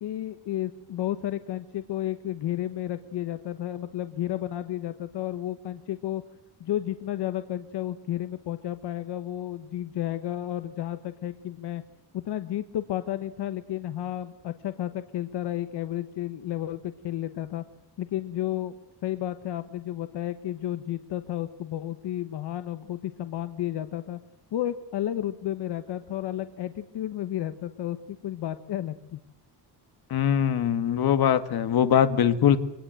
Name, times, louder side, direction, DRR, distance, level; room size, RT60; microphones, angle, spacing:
voice 1, 0.0-6.2 6.6-11.8 12.1-17.6 18.0-18.7 19.0-24.2 24.5-29.2, left 12 dB, 80° left, 10 dB, 1.3 m, -32 dB
voice 2, 30.1-32.6, left 9 dB, 65° left, 10 dB, 1.8 m, -22 dB
25.0 x 19.0 x 7.7 m, 0.91 s
wide cardioid pair, 160°, 40 cm